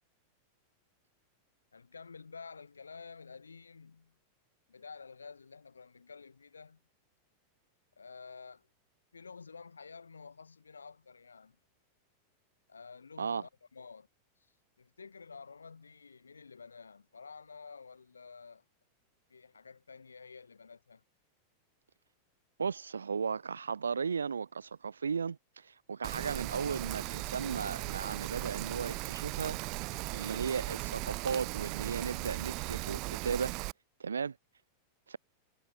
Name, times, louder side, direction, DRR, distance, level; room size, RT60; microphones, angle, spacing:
voice 1, 1.7-4.1 4.7-6.8 8.0-8.7 9.1-11.6 12.7-14.1 14.4-14.5 14.8-18.6 19.3-21.0, left 5 dB, 75° left, 3.2 m, -50 dB
voice 2, 22.6-29.6 30.1-33.5 34.0-34.4 35.1-35.2, right 6 dB, 75° right, 0.6 m, -35 dB
Rain, 26.0-33.7, right 27 dB, 40° right, 0.9 m, -38 dB
figure-of-eight pair, 90°, 0 cm